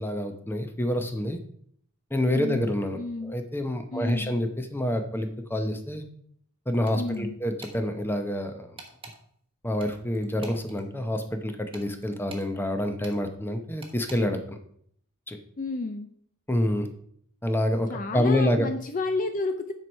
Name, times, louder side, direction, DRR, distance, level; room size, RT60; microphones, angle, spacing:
voice 1, 0.0-1.4 2.1-6.0 6.7-8.8 9.6-14.6 15.3-15.4 16.5-16.9 17.4-18.7, left 1 dB, 10° left, 6 dB, 0.8 m, -27 dB
voice 2, 2.3-3.3 3.9-4.3 6.9-7.4 15.6-16.1 17.9-19.7, left 3 dB, 35° left, 7 dB, 0.5 m, -31 dB
sound 1, 6.9-7.2 7.6-7.8 8.8-9.2 9.8-10.8 11.7-12.5 13.0-13.2 13.8-14.2, right 3 dB, 25° right, 1.4 m, -46 dB
9.5 x 4.6 x 5.3 m, 0.65 s
head